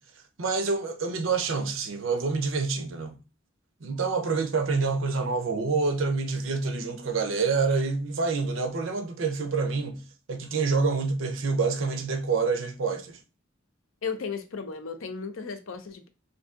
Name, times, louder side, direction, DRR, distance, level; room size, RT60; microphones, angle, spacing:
voice 1, 0.4-3.2 3.8-10.0 10.3-13.2, right 4 dB, 75° right, 0.6 m, -27 dB
voice 2, 14.0-16.1, left 5 dB, 85° left, 0.6 m, -35 dB
2.7 x 2.6 x 3.6 m
head